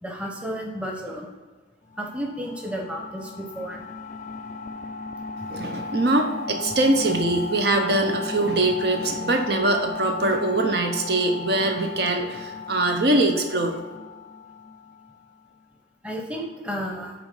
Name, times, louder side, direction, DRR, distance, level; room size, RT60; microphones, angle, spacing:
voice 1, 0.0-1.3 2.0-3.8 16.0-17.1, equal, 5° right, 0 dB, 0.9 m, -32 dB
sound 1, 1.9-15.4, left 4 dB, 45° left, 0.3 m, -35 dB
voice 2, 5.5-13.7, right 2 dB, 60° right, 4 dB, 0.7 m, -23 dB
8.7 x 3.1 x 5.4 m, 1.4 s
head